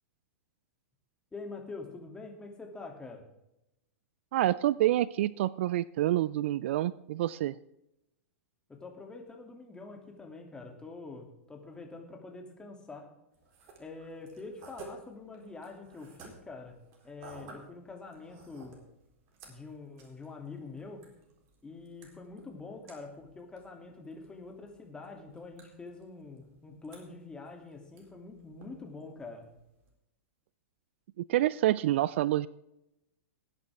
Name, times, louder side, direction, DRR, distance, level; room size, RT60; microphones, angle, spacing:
voice 1, 1.3-3.2 8.7-13.1 13.8-18.8 19.4-21.0 21.6-29.5, left 3 dB, 10° left, 2 dB, 2.8 m, -45 dB
voice 2, 4.3-7.5 31.2-32.5, right 14 dB, 60° right, 20 dB, 0.4 m, -27 dB
sound 1, 13.3-29.9, right 3 dB, 45° right, 3.8 m, -56 dB
19.5 x 9.4 x 3.6 m, 0.86 s
hypercardioid pair, 110°, 7 cm